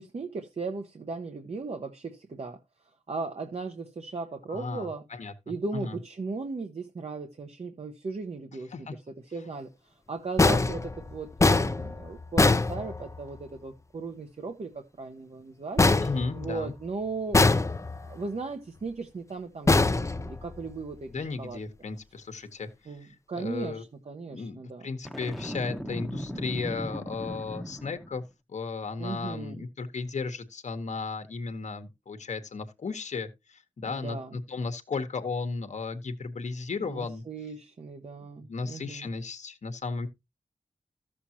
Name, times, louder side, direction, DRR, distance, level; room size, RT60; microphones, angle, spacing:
voice 1, 0.0-2.6 3.1-5.0 5.5-9.0 9.3-15.8 16.3-17.5 18.0-21.6 22.9-24.9 29.0-29.6 33.8-34.4 36.8-39.1, right 3 dB, 55° right, 1.1 m, -37 dB
voice 2, 4.5-5.3 5.7-6.0 8.7-9.0 16.0-16.7 21.1-23.8 24.3-28.2 28.5-37.2 38.2-40.1, left 4 dB, 70° left, 1.1 m, -35 dB
sound 1, 10.4-13.4 15.8-16.9 17.3-18.2 19.7-20.8, left 3 dB, 25° left, 0.6 m, -24 dB
Boom, 25.1-28.3, equal, ahead, 0.9 m, -37 dB
14.0 x 6.7 x 2.9 m
wide cardioid pair, 80°, 13 cm